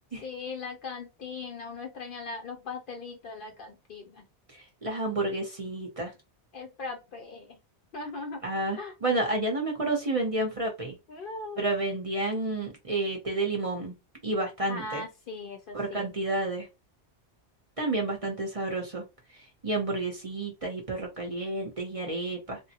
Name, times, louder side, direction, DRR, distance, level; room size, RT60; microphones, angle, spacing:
voice 1, 0.2-4.3 6.5-7.6 7.9-8.4 8.8-8.9 11.1-11.6 14.7-16.1, left 3 dB, 60° left, 5 dB, 0.7 m, -39 dB
voice 2, 4.5-6.1 8.4-11.0 11.6-13.9 14.2-15.0 15.7-16.7 17.8-19.0 19.6-22.6, right 2 dB, 35° right, 1 dB, 0.7 m, -30 dB
3.5 x 2.0 x 2.8 m, 0.25 s
omnidirectional pair, 1.1 m